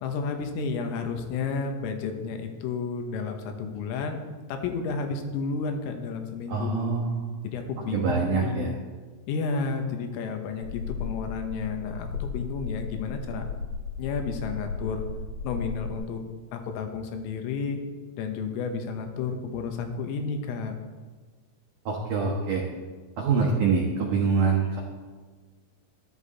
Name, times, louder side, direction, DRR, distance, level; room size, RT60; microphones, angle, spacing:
voice 1, 0.0-4.2 4.5-7.0 7.4-8.8 9.3-13.4 14.0-15.0 15.4-16.2 16.5-17.8 18.2-20.7, left 5 dB, 85° left, 4 dB, 3.8 m, -31 dB
voice 2, 6.5-7.3 7.9-8.8 21.9-22.6 23.2-24.8, right 5 dB, 80° right, -1 dB, 1.8 m, -25 dB
sound 1, 10.6-15.9, left 5 dB, 65° left, 2.3 m, -35 dB
13.5 x 12.5 x 4.2 m, 1.4 s
omnidirectional pair, 5.8 m